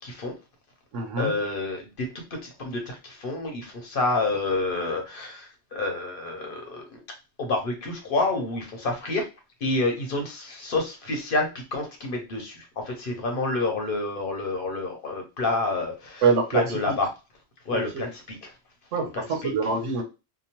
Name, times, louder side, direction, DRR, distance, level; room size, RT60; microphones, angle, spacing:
voice 1, 0.0-0.3 1.2-7.0 7.4-9.3 9.6-16.2 16.5-17.1 17.7-18.5 19.1-19.5, left 2 dB, 55° left, 3 dB, 0.8 m, -28 dB
voice 2, 0.9-1.4 16.2-16.6 16.9-17.0 17.7-18.1 18.9-20.0, right 5 dB, 85° right, 4 dB, 1.0 m, -25 dB
2.9 x 2.0 x 2.8 m, 0.28 s
omnidirectional pair, 1.2 m